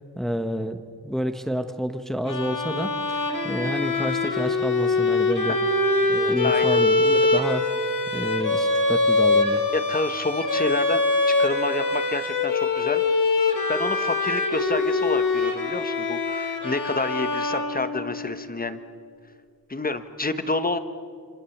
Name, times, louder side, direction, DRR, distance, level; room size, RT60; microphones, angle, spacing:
voice 1, 0.1-5.6 6.1-7.7 8.1-9.6, equal, ahead, 7 dB, 1.1 m, -29 dB
Bowed string instrument, 2.3-18.3, left 3 dB, 55° left, 3.7 m, -23 dB
voice 2, 6.4-6.8 9.7-11.0 11.3-13.0 13.5-18.8 19.7-20.8, left 2 dB, 25° left, 10 dB, 1.3 m, -28 dB
27.0 x 26.0 x 7.2 m, 2.2 s
wide cardioid pair, 125°, 38 cm